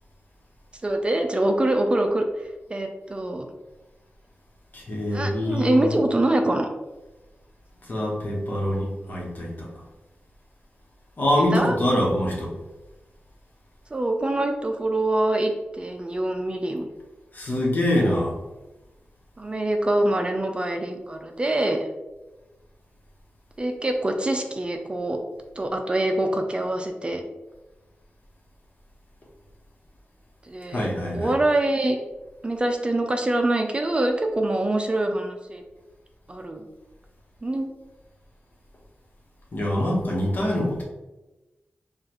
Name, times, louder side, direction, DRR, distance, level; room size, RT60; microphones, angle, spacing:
voice 1, 0.8-2.3 2.7-3.5 5.1-6.7 11.5-11.8 13.9-16.9 19.4-21.9 23.6-25.2 25.6-27.2 30.4-32.0 32.4-35.6 36.3-36.6 37.4-37.7, right 1 dB, 30° right, 4 dB, 0.4 m, -24 dB
voice 2, 4.7-6.0 7.8-9.7 11.2-12.5 17.3-18.4 30.7-31.4 39.5-40.8, left 1 dB, 55° left, -2 dB, 1.1 m, -24 dB
4.9 x 2.4 x 3.0 m, 1.1 s
wide cardioid pair, 85°, 4 cm